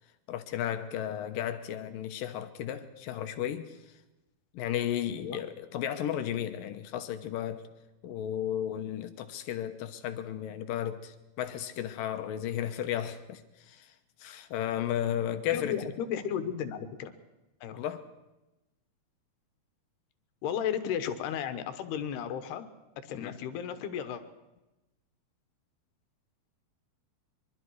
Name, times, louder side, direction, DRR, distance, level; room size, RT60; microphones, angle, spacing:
voice 1, 0.3-3.7 4.5-7.7 8.0-13.4 13.7-13.9 14.2-15.8 17.7-18.0 23.1-23.3, left 10 dB, 70° left, 2.5 m, -34 dB
voice 2, 15.5-17.1 17.6-17.8 20.4-22.7 23.0-24.2, left 8 dB, 85° left, 3.3 m, -34 dB
23.5 x 23.5 x 4.8 m
omnidirectional pair, 4.6 m